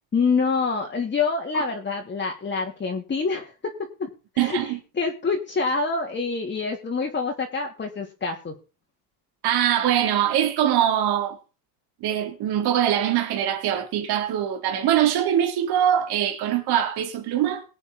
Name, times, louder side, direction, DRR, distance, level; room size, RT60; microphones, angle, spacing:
voice 1, 0.1-3.5 4.0-4.1 4.3-4.7 5.0-8.5, left 4 dB, 25° left, 3.0 m, -26 dB
voice 2, 4.4-4.8 9.4-11.4 12.0-17.6, right 10 dB, 55° right, 4.0 m, -23 dB
22.5 x 8.5 x 4.0 m
supercardioid pair, 110°, 46 cm